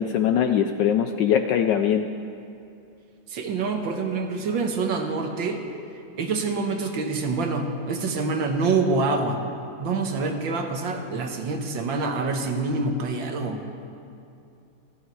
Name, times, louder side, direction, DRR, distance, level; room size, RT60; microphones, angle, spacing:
voice 1, 0.0-2.1, left 9 dB, 75° left, 8 dB, 1.0 m, -22 dB
voice 2, 3.3-5.6 6.2-9.4 9.8-13.6, right 3 dB, 65° right, 4 dB, 1.8 m, -26 dB
28.0 x 9.8 x 4.7 m, 2.6 s
omnidirectional pair, 2.3 m